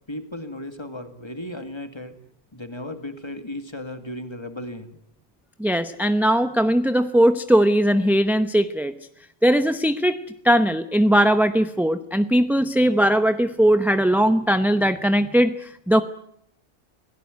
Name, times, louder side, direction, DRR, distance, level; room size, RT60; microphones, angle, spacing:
voice 1, 0.1-2.1 2.5-5.0, left 1 dB, 20° left, 8 dB, 2.2 m, -35 dB
voice 2, 5.6-8.9 9.4-10.2 10.4-16.0, equal, ahead, 9 dB, 0.7 m, -19 dB
26.5 x 17.5 x 9.5 m, 0.77 s
omnidirectional pair, 1.2 m